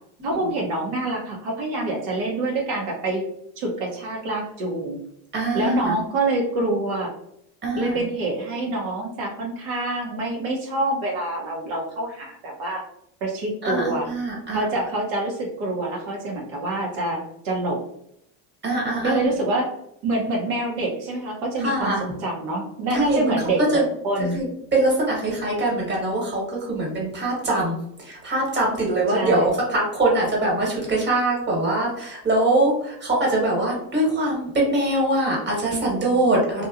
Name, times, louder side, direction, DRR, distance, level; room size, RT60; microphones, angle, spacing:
voice 1, 0.2-3.2 3.6-5.0 5.5-7.1 7.8-12.8 13.2-14.1 14.5-17.8 19.0-19.8 20.0-24.4 29.1-29.5, right 2 dB, 70° right, -2 dB, 0.8 m, -26 dB
voice 2, 5.3-6.0 7.6-8.0 13.6-14.6 18.6-19.2 21.6-22.0 22.9-23.3 23.7-23.8 24.3-24.4 24.7-36.7, right 2 dB, 25° right, -3 dB, 1.2 m, -23 dB
2.9 x 2.2 x 2.4 m, 0.75 s
cardioid pair, 115°, 41 cm